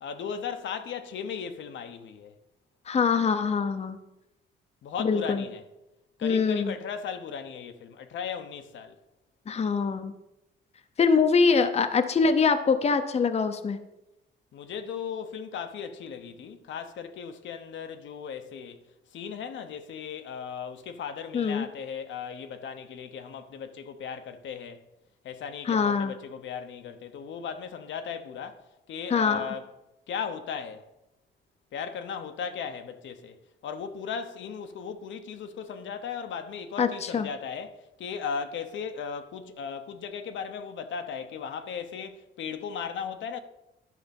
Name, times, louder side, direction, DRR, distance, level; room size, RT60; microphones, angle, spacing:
voice 1, 0.0-2.3 4.8-5.6 6.2-9.0 14.5-18.8 19.1-24.8 25.2-28.6 28.9-29.7 30.1-30.8 31.7-43.4, left 6 dB, 70° left, 0.8 m, -37 dB
voice 2, 2.9-4.0 5.0-5.4 6.2-6.7 9.5-10.1 11.0-13.8 21.3-21.7 25.7-26.1 29.1-29.4 36.8-37.3, left 5 dB, 30° left, 0.7 m, -24 dB
11.0 x 5.0 x 5.2 m
cardioid pair, 90°, 20 cm